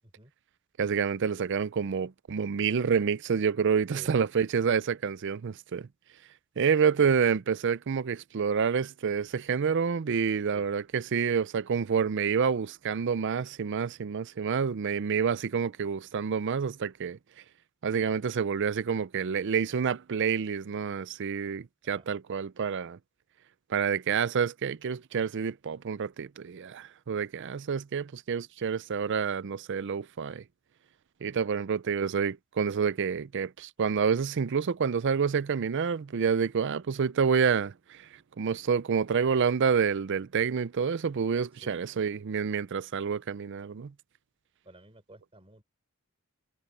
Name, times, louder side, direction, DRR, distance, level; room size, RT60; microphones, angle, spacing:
voice 1, 0.8-5.9 6.6-17.2 17.8-23.0 23.7-30.4 31.2-38.1 38.4-43.9, right 6 dB, 55° right, 0.5 m, -28 dB
voice 2, 44.6-45.6, right 1 dB, 25° right, 6.1 m, -52 dB
head